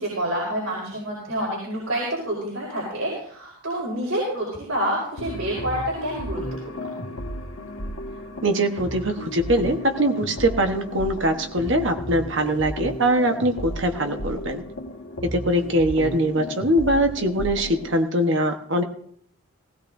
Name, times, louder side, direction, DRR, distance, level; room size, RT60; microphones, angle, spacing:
voice 1, 0.0-6.9, right 1 dB, 75° right, -3 dB, 5.5 m, -28 dB
sound 1, 5.2-18.0, equal, 80° left, 1.7 m, -34 dB
voice 2, 8.4-14.6 15.2-18.8, right 1 dB, 55° right, 5 dB, 1.1 m, -22 dB
18.5 x 17.5 x 2.6 m, 0.62 s
head